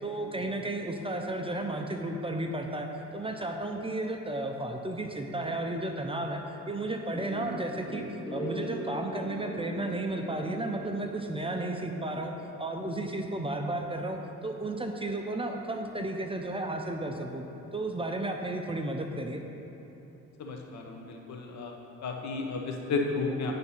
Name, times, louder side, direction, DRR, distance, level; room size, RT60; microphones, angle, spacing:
voice 1, 0.0-8.0 8.3-12.3 12.6-17.4 17.7-19.4, right 1 dB, 20° right, 3 dB, 0.5 m, -33 dB
sound 1, 7.1-12.3, right 1 dB, 15° left, 1.0 m, -40 dB
voice 2, 20.4-21.8 22.0-23.5, left 4 dB, 65° left, 2 dB, 1.0 m, -33 dB
9.5 x 3.6 x 5.7 m, 3.0 s
cardioid pair, 90°, 30 cm